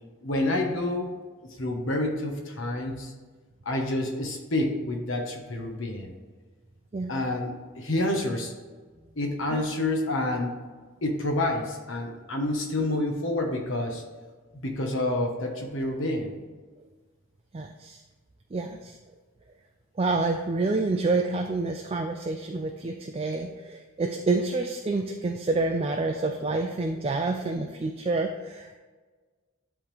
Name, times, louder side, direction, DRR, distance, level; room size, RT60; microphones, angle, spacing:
voice 1, 0.2-1.1 1.6-3.1 3.6-6.1 7.1-8.5 9.2-10.6 11.0-14.0 14.5-16.3, left 1 dB, 65° left, 2 dB, 1.2 m, -28 dB
voice 2, 17.5-18.0 18.5-19.0 20.0-28.7, right 3 dB, 25° right, 4 dB, 0.3 m, -28 dB
10.5 x 3.6 x 3.4 m, 1.4 s
head